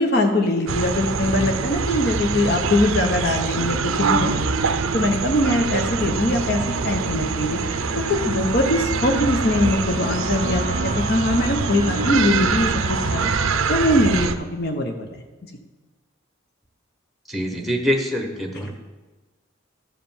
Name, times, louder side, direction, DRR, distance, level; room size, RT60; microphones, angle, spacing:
voice 1, 0.0-4.3 4.6-15.2, left 1 dB, 50° left, 4 dB, 1.1 m, -22 dB
sound 1, 0.7-14.3, right 5 dB, 85° right, 0.6 m, -24 dB
Wind instrument woodwind instrument, 2.1-13.7, left 2 dB, 15° left, 1.4 m, -37 dB
voice 2, 17.3-18.8, equal, ahead, 3 dB, 1.0 m, -25 dB
12.5 x 5.1 x 7.2 m, 1.2 s
head